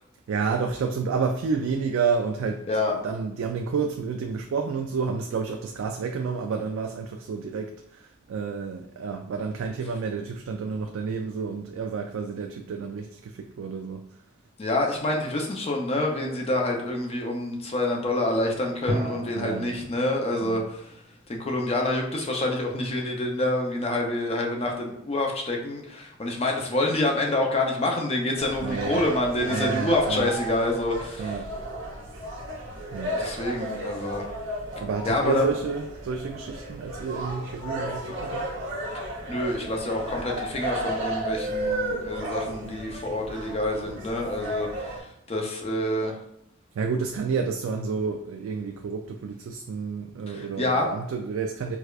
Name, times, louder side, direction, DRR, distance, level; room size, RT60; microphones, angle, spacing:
voice 1, 0.3-2.6 2.9-14.1 19.4-19.7 20.4-20.6 28.6-29.0 29.5-30.3 31.2-31.5 32.9-33.2 34.8-38.5 46.8-51.8, right 5 dB, 85° right, 0.3 m, -30 dB
sound 1, 10.8-13.7 14.3-14.6 18.9-23.2, right 1 dB, 35° right, 0.6 m, -39 dB
voice 2, 14.6-20.9 21.3-31.4 33.1-34.2 35.0-35.5 39.3-44.7 45.3-46.1 50.3-50.9, left 1 dB, 30° left, 0.6 m, -27 dB
sound 2, 28.4-45.0, right 1 dB, 65° right, 0.9 m, -33 dB
4.7 x 2.2 x 2.4 m
head